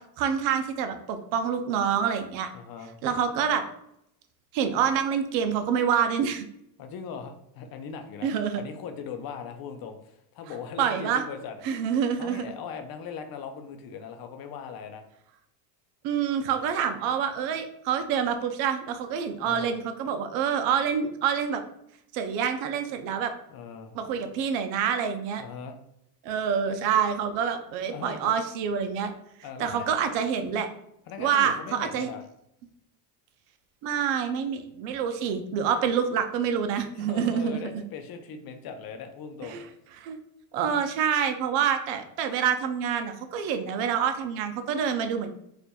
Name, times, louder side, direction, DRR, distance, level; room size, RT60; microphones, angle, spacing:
voice 1, 0.2-2.5 3.0-3.6 4.5-6.5 8.2-8.6 10.8-11.2 11.6-12.5 16.0-21.6 22.1-23.3 23.9-25.4 26.2-29.1 29.6-30.7 31.2-32.1 33.8-37.8 39.5-39.6 40.0-40.2 40.5-45.3, right 7 dB, 75° right, 8 dB, 0.7 m, -27 dB
voice 2, 2.5-2.9 6.8-11.6 12.2-15.0 19.4-19.8 23.5-24.0 25.4-25.8 27.9-28.4 29.4-30.0 31.1-32.2 36.9-39.6, left 6 dB, 50° left, 6 dB, 0.6 m, -39 dB
4.3 x 2.5 x 2.3 m, 0.76 s
supercardioid pair, 90°, 49 cm